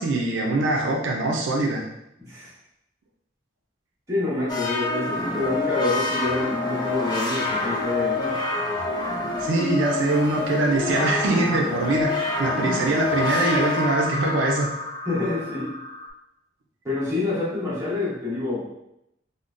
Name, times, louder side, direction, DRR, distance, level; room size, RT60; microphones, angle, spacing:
voice 1, 0.0-1.8 9.4-12.1 12.4-14.7, right 2 dB, 85° right, -1 dB, 0.5 m, -23 dB
voice 2, 2.2-2.5 4.1-8.4 12.6-12.8 15.0-15.7 16.8-18.6, left 2 dB, 15° right, -10 dB, 1.2 m, -27 dB
sound 1, 4.5-16.1, left 2 dB, 20° left, 0.4 m, -27 dB
3.7 x 2.1 x 2.4 m, 0.81 s
head